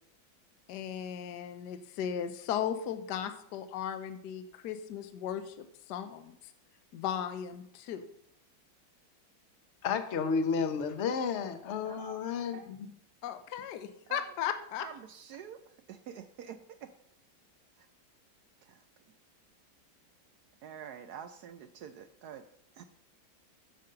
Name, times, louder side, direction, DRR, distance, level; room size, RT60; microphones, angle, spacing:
voice 1, 0.7-6.5 6.9-8.1 13.2-14.9, left 9 dB, 65° left, 1.2 m, -36 dB
voice 2, 9.8-12.9, left 5 dB, 50° left, 0.9 m, -32 dB
voice 3, 11.8-12.7 14.1-14.3 14.8-15.6 15.9-16.9 18.7-18.8 20.6-22.4 22.8-22.9, right 8 dB, 70° right, 0.9 m, -47 dB
10.5 x 5.2 x 6.7 m
omnidirectional pair, 2.1 m